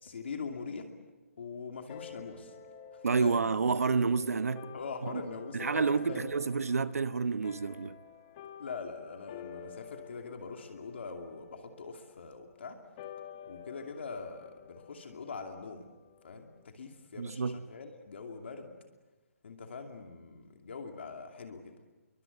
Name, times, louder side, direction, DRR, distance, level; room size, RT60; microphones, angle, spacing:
voice 1, 0.0-0.9 1.4-2.5 2.9-3.5 4.7-6.4 8.6-12.8 13.5-15.9 16.2-18.7 19.4-21.7, left 4 dB, 50° left, 2.7 m, -43 dB
sound 1, 1.9-16.6, left 8 dB, 20° left, 1.3 m, -51 dB
voice 2, 3.0-4.7 5.0-5.2 5.5-8.0 17.2-17.6, right 5 dB, 80° right, 1.0 m, -29 dB
29.0 x 23.0 x 8.2 m
hypercardioid pair, 175°, 8 cm